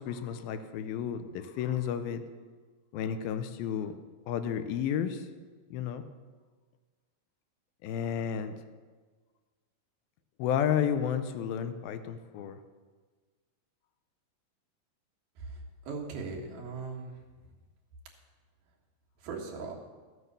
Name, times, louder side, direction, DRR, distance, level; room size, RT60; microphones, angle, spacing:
voice 1, 0.0-2.2 2.9-4.0 4.3-5.3 5.7-6.0 7.8-8.5 10.4-12.6, left 8 dB, 85° left, 10 dB, 2.6 m, -32 dB
voice 2, 15.4-17.2 19.2-19.8, right 4 dB, 85° right, 0 dB, 3.5 m, -39 dB
13.5 x 8.0 x 6.8 m, 1.4 s
omnidirectional pair, 4.2 m